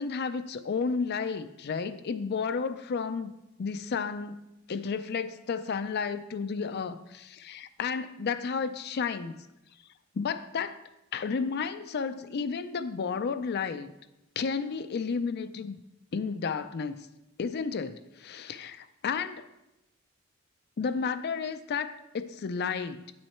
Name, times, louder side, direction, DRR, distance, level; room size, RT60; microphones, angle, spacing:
voice 1, 0.0-3.3 3.6-4.4 4.7-9.4 10.2-10.8 11.1-13.9 14.4-15.8 16.1-17.1 17.4-19.5 20.8-23.1, left 5 dB, 50° left, 11 dB, 0.4 m, -32 dB
9.1 x 6.4 x 4.3 m, 0.93 s
head